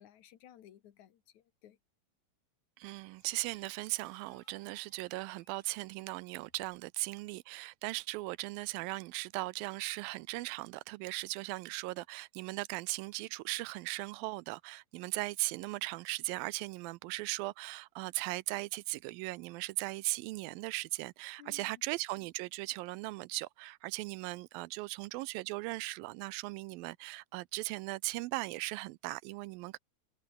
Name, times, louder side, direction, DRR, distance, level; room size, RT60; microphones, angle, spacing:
voice 1, 0.0-1.8 21.4-21.8, left 11 dB, 60° left, 2.6 m, -57 dB
voice 2, 2.8-29.8, right 21 dB, 85° right, 2.4 m, -38 dB
sound 1, 3.0-6.8, left 1 dB, 15° left, 4.7 m, -69 dB
omnidirectional pair, 4.1 m